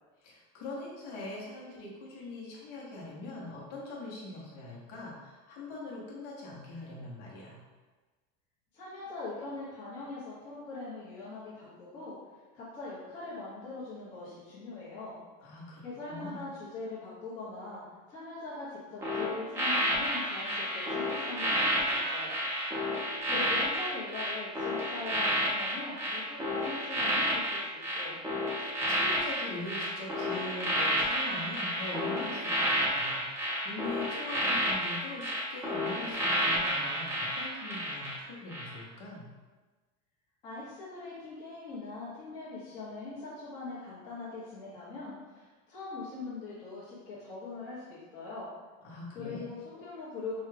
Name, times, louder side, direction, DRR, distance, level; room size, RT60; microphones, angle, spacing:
voice 1, 0.2-7.6 15.4-15.8 16.1-16.4 28.6-39.3 48.8-49.5, left 2 dB, 50° left, -5 dB, 1.1 m, -42 dB
voice 2, 8.7-12.2 12.5-15.2 15.8-22.4 23.3-27.6 27.9-28.2 40.4-48.5 49.1-50.4, left 3 dB, 25° left, -12 dB, 1.0 m, -41 dB
sound 1, 19.0-38.2 38.5-38.8, equal, 10° right, 0.7 m, -31 dB
4.7 x 2.3 x 3.3 m, 1.3 s
cardioid pair, 170°, 20 cm